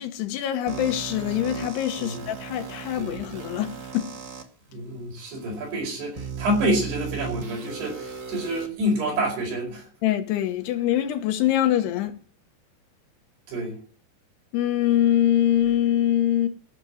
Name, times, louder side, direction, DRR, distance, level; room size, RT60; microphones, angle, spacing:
voice 1, 0.0-4.1 10.0-12.2 14.5-16.5, left 12 dB, 80° left, 3.3 m, -24 dB
sound 1, 0.7-4.4 5.2-5.3 6.2-8.7, right 6 dB, 55° right, 1.2 m, -36 dB
voice 2, 4.7-9.9 13.5-13.8, right 1 dB, 75° right, 6.9 m, -28 dB
16.0 x 6.8 x 9.3 m
omnidirectional pair, 4.8 m